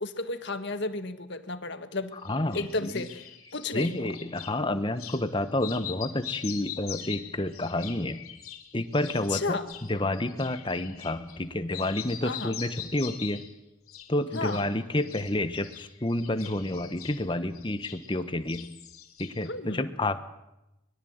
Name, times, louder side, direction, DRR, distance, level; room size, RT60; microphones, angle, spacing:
voice 1, 0.0-2.1 2.5-3.2 3.5-4.1 9.3-9.7 12.2-12.5 14.3-14.7 19.5-19.9, left 3 dB, 55° left, 9 dB, 1.8 m, -32 dB
sound 1, 2.2-4.5 5.0-5.2 5.5-11.4 11.7-13.5 13.9-14.7 15.0-18.2 18.5-19.5, left 10 dB, 90° left, 3.5 m, -43 dB
voice 2, 2.2-3.0 3.7-8.2 8.7-9.6 9.9-13.4 14.1-18.7 19.2-20.2, left 1 dB, 20° left, 11 dB, 1.2 m, -29 dB
24.0 x 21.5 x 8.1 m, 0.92 s
head